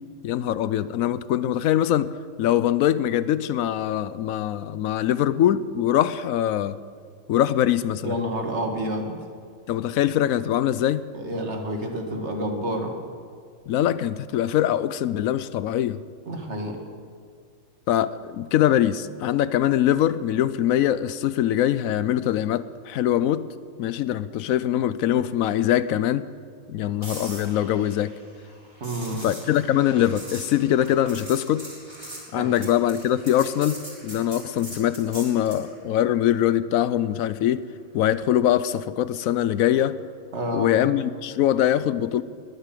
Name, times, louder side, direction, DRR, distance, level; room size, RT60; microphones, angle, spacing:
voice 1, 0.2-2.1 2.4-6.8 7.3-8.1 9.7-11.0 13.7-16.0 17.9-23.5 23.8-26.2 26.7-28.1 29.2-31.6 32.3-37.6 37.9-40.0 40.5-42.2, left 11 dB, 85° left, 15 dB, 1.0 m, -23 dB
voice 2, 8.0-9.2 11.1-13.0 16.3-16.8 28.8-29.3 32.3-32.8 40.3-40.8, equal, 55° right, 3 dB, 1.9 m, -29 dB
sound 1, 27.0-35.7 39.9-40.1, right 1 dB, 20° right, 4.1 m, -41 dB
20.5 x 8.3 x 7.6 m, 2.1 s
omnidirectional pair, 1.4 m